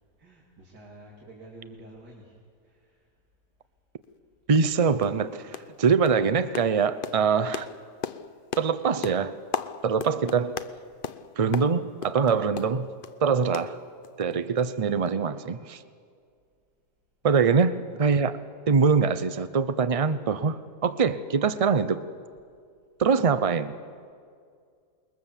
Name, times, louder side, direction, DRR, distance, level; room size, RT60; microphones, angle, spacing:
voice 1, 0.2-3.1, right 1 dB, 80° right, 3.4 m, -49 dB
sound 1, 4.0-4.1 4.6-4.7 5.0-5.2 5.5-5.8 6.1-13.2 13.5-14.3 14.6-14.7 15.1-15.2, left 7 dB, 55° left, 0.6 m, -37 dB
voice 2, 4.5-7.7 8.6-9.4 9.8-10.6 11.4-12.9 13.2-13.8 14.2-15.8 17.2-18.4 18.7-22.0 23.0-23.7, right 5 dB, 65° right, 0.3 m, -23 dB
27.5 x 21.5 x 7.4 m
omnidirectional pair, 1.7 m